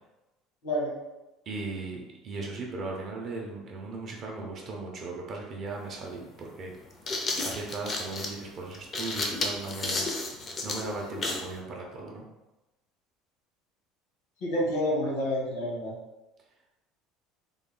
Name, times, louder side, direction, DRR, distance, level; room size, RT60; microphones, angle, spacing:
voice 1, 1.5-6.7 7.1-10.1 10.6-12.2, right 3 dB, 30° right, -1 dB, 0.5 m, -37 dB
sound 1, 5.7-5.8 6.7-11.5, left 2 dB, 20° left, 0.4 m, -32 dB
voice 2, 14.4-15.9, equal, 85° left, -4 dB, 1.3 m, -28 dB
3.7 x 2.2 x 3.6 m, 1.0 s
cardioid pair, 180°, 0 cm